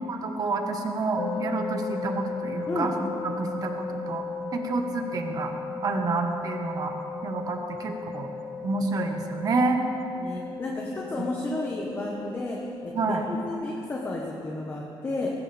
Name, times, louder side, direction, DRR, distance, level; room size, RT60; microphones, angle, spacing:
voice 1, 0.1-2.9 3.4-4.2 4.5-5.5 5.8-6.9 7.2-8.3 8.6-9.8 12.9-13.2, right 3 dB, 40° right, 4 dB, 1.4 m, -28 dB
sound 1, 1.2-13.5, left 4 dB, 45° left, 0.7 m, -36 dB
voice 2, 10.1-15.3, left 2 dB, 25° left, -2 dB, 1.3 m, -32 dB
19.5 x 17.0 x 3.5 m, 2.7 s
cardioid pair, 175°, 9 cm